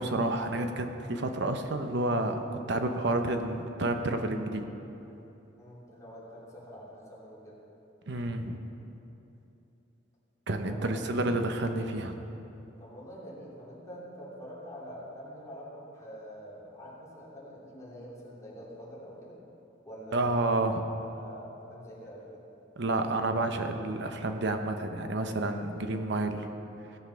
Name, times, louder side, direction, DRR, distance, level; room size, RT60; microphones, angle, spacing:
voice 1, 0.0-2.4 2.7-4.7 8.1-8.6 10.5-12.2 20.1-20.7 22.8-26.4, right 2 dB, 65° right, 6 dB, 0.9 m, -30 dB
voice 2, 5.6-7.6 10.7-11.4 12.8-19.4 19.8-20.5 21.0-22.4, equal, 15° left, -7 dB, 3.0 m, -45 dB
16.5 x 7.4 x 5.7 m, 2.9 s
head